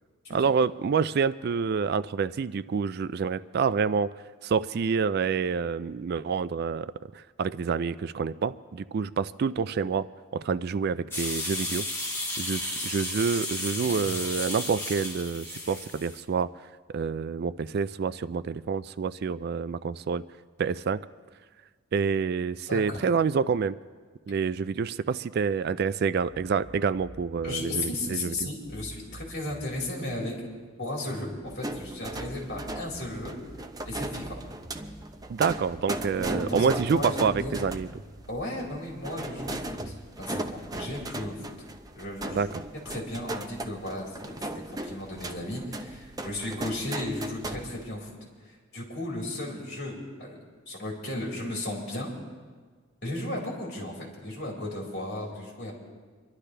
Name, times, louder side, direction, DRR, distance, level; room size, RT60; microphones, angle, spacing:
voice 1, 0.3-4.1 4.4-10.1 10.3-11.9 12.4-16.5 16.9-20.2 20.6-21.0 21.9-23.8 24.3-28.5 35.3-37.9 42.4-42.5, right 5 dB, 50° right, 16 dB, 0.3 m, -27 dB
sound 1, 11.1-16.2, left 1 dB, 10° left, 2.4 m, -33 dB
voice 2, 13.8-14.2 22.7-23.0 27.4-30.4 30.8-33.3 33.8-34.4 36.1-37.6 38.3-41.4 41.9-42.5 42.9-44.4 44.8-48.1 48.4-50.4 50.7-52.1 53.0-55.7, left 1 dB, 55° left, -3 dB, 4.1 m, -35 dB
sound 2, 26.3-40.0, right 2 dB, 70° right, 3.7 m, -48 dB
sound 3, 31.5-47.8, right 1 dB, 20° right, 0.6 m, -37 dB
26.0 x 12.0 x 3.3 m, 1.5 s
head